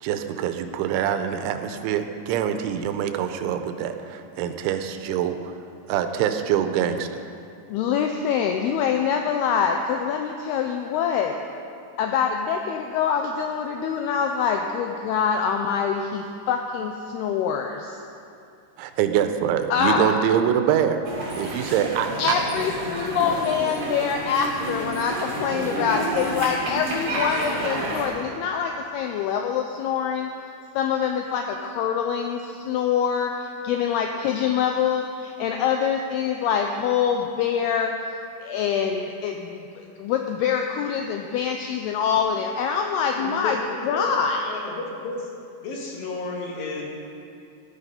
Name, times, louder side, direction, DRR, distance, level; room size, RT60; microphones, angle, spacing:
voice 1, 0.0-5.5 5.9-7.1 18.8-21.0 21.3-22.1, right 9 dB, 85° right, 8 dB, 3.1 m, -24 dB
voice 2, 7.7-11.4 12.0-18.0 19.7-20.2 22.2-30.3 30.8-37.9 38.4-43.6 43.8-44.5, left 7 dB, 85° left, 4 dB, 2.3 m, -25 dB
sound 1, 21.0-28.1, right 1 dB, 50° right, 4.1 m, -30 dB
voice 3, 43.2-44.1 44.4-45.3 45.6-46.8, left 3 dB, 60° left, -1 dB, 3.3 m, -32 dB
15.5 x 12.0 x 5.3 m, 2.5 s
omnidirectional pair, 5.4 m